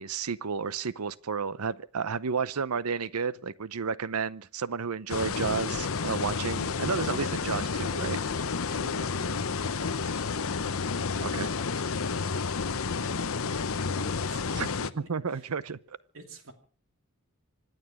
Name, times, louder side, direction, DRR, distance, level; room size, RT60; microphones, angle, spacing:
voice 1, 0.0-8.2 11.2-11.5 14.5-14.7 15.1-16.0, right 5 dB, 90° right, 0.7 m, -32 dB
sound 1, 5.1-14.9, left 5 dB, 70° left, 0.8 m, -30 dB
voice 2, 8.7-12.3 12.8-15.5 16.1-16.5, right 1 dB, 65° right, 2.8 m, -48 dB
26.0 x 9.2 x 6.0 m
head